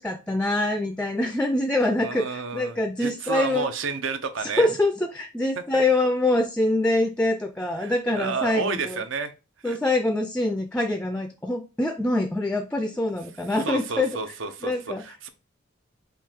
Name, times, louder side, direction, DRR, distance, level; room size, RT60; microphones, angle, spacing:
voice 1, 0.0-3.7 4.4-9.0 9.6-14.1 14.6-15.0, left 2 dB, 5° left, 6 dB, 0.3 m, -25 dB
voice 2, 2.0-4.7 5.7-5.8 7.8-9.3 9.6-9.8 13.6-15.3, right 4 dB, 80° right, 9 dB, 0.7 m, -31 dB
3.7 x 2.7 x 4.4 m, 0.30 s
head